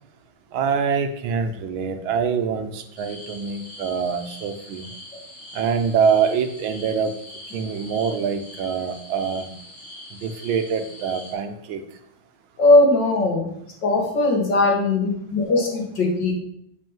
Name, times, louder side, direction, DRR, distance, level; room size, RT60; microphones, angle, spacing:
voice 1, 0.5-4.9 5.5-7.1 7.5-9.5 10.2-11.8, right 6 dB, 75° right, 8 dB, 1.6 m, -24 dB
sound 1, 3.0-11.3, left 1 dB, 80° left, 4.3 m, -42 dB
voice 2, 12.6-13.5 13.8-16.3, left 2 dB, 60° left, -1 dB, 2.6 m, -19 dB
7.5 x 5.4 x 7.3 m, 0.74 s
omnidirectional pair, 2.3 m